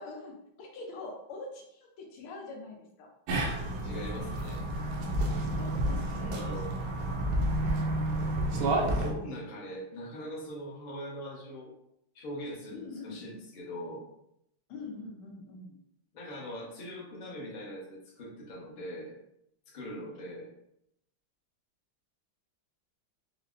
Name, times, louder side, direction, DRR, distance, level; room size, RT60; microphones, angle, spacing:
voice 1, 0.0-3.1 5.6-7.0 12.7-13.2 14.7-15.8, left 3 dB, 85° left, 0 dB, 1.6 m, -44 dB
sound 1, 3.3-9.1, right 1 dB, 85° right, 1.5 m, -30 dB
voice 2, 3.8-4.7 6.3-6.7 8.5-11.7 12.1-14.0 16.1-19.1 19.7-20.5, equal, 40° left, -5 dB, 0.6 m, -41 dB
5.2 x 2.1 x 2.5 m, 0.79 s
omnidirectional pair, 2.4 m